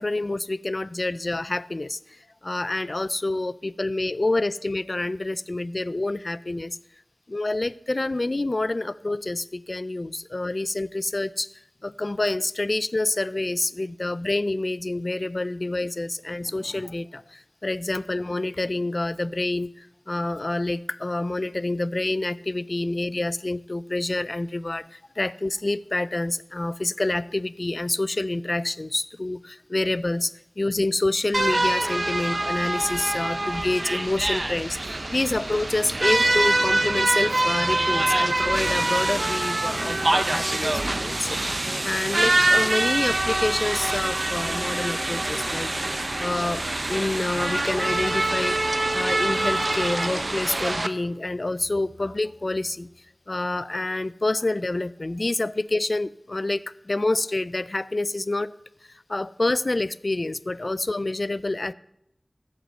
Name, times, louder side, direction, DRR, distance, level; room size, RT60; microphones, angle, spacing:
voice 1, 0.0-6.8 7.3-11.5 11.8-48.6 48.9-52.9 53.3-58.5 58.9-61.7, left 2 dB, 55° left, 17 dB, 0.3 m, -27 dB
sound 1, 31.3-50.9, right 2 dB, 55° right, 0.6 m, -25 dB
15.0 x 5.4 x 6.5 m, 0.78 s
wide cardioid pair, 50°, 0 cm